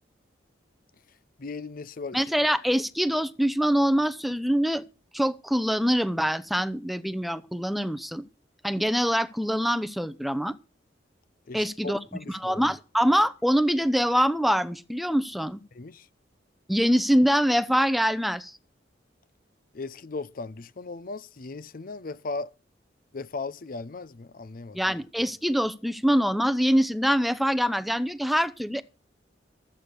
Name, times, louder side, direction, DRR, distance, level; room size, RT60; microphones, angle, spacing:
voice 1, 1.4-2.2 11.5-12.6 15.7-16.1 19.7-22.5 23.1-24.8, left 3 dB, 50° left, 0.6 m, -37 dB
voice 2, 2.1-4.8 5.1-8.2 8.6-10.5 11.5-12.0 12.3-15.6 16.7-18.6 24.7-28.8, equal, ahead, 0.7 m, -24 dB
13.5 x 8.4 x 6.4 m
head